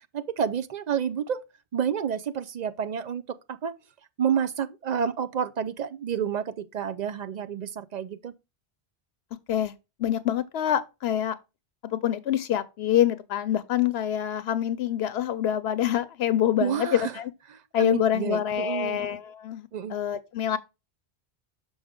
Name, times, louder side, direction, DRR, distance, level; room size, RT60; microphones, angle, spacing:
voice 1, 0.1-1.4 1.7-3.7 4.2-8.3 16.6-17.1 17.8-19.0 19.7-20.0, right 8 dB, 55° right, 0.5 m, -29 dB
voice 2, 10.0-11.4 11.8-17.3 17.7-20.6, left 10 dB, 75° left, 0.8 m, -26 dB
6.3 x 5.1 x 3.6 m
omnidirectional pair, 1.1 m